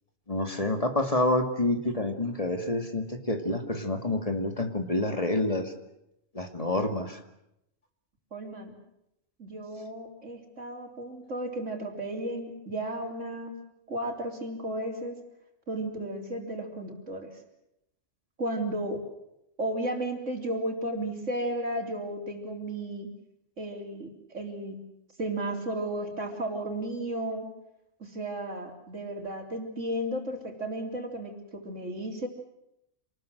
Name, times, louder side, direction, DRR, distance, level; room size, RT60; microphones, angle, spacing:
voice 1, 0.3-5.7 6.3-7.2, left 1 dB, 30° left, 6 dB, 2.2 m, -28 dB
voice 2, 8.3-8.7 9.4-13.6 13.9-15.2 15.7-17.4 18.4-19.0 19.6-23.1 23.6-24.8 25.2-27.5 28.0-32.3, right 1 dB, 85° right, 3 dB, 4.0 m, -34 dB
27.5 x 20.0 x 7.8 m, 0.81 s
omnidirectional pair, 1.2 m